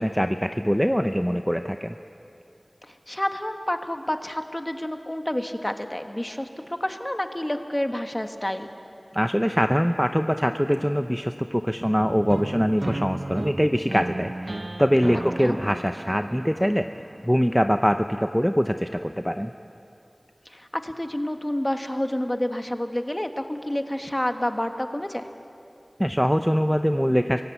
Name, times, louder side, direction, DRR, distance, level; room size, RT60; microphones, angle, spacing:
voice 1, 0.0-2.0 9.1-16.9 17.2-19.5 26.0-27.4, equal, ahead, 7 dB, 0.6 m, -23 dB
voice 2, 2.8-8.7 15.4-15.6 20.4-25.3, left 1 dB, 25° left, 6 dB, 1.4 m, -29 dB
sound 1, 12.3-18.2, right 1 dB, 50° right, 0.5 m, -34 dB
24.0 x 17.0 x 8.3 m, 2.6 s
wide cardioid pair, 45°, 0 cm